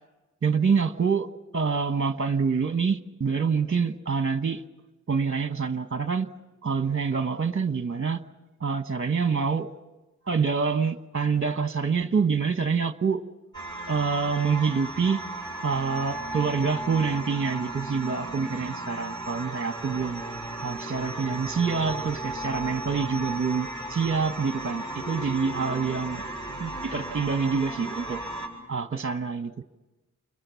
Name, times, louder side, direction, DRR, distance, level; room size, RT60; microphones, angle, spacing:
voice 1, 0.4-1.3 1.5-4.6 5.1-6.3 6.6-8.2 8.6-9.7 10.3-13.2 13.9-15.2 15.6-20.2 20.6-26.2 26.6-28.2 28.7-29.6, right 5 dB, 40° right, 9 dB, 1.2 m, -26 dB
sound 1, 13.5-28.5, right 1 dB, 15° left, 6.9 m, -35 dB
29.5 x 22.5 x 7.0 m, 1.1 s
wide cardioid pair, 65°, 31 cm